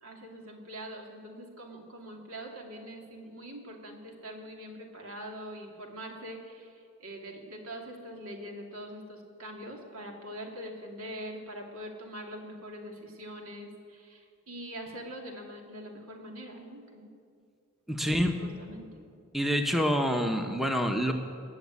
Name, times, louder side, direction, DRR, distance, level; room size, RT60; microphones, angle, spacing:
voice 1, 0.0-17.1 18.0-18.1 18.4-19.0, equal, 80° right, 1 dB, 2.6 m, -43 dB
voice 2, 17.9-18.4 19.3-21.1, equal, ahead, 4 dB, 0.8 m, -27 dB
21.0 x 7.2 x 9.6 m, 2.3 s
head